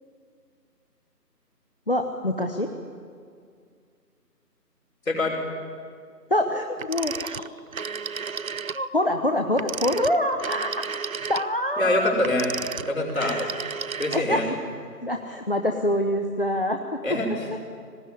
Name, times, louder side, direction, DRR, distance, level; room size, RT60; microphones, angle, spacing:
voice 1, 1.9-2.7 6.3-7.4 8.7-10.7 11.3-12.1 13.2-13.5 14.1-14.4 15.0-17.0, left 1 dB, 35° left, 4 dB, 0.9 m, -25 dB
voice 2, 5.1-5.4 11.8-12.5 12.9-13.4 14.0-14.5 17.0-17.6, left 1 dB, 55° left, -1 dB, 5.5 m, -25 dB
Telephone, 6.8-8.9 9.5-14.5, right 5 dB, 55° right, 0.6 m, -33 dB
19.0 x 17.5 x 9.9 m, 2.2 s
figure-of-eight pair, 170°, 49 cm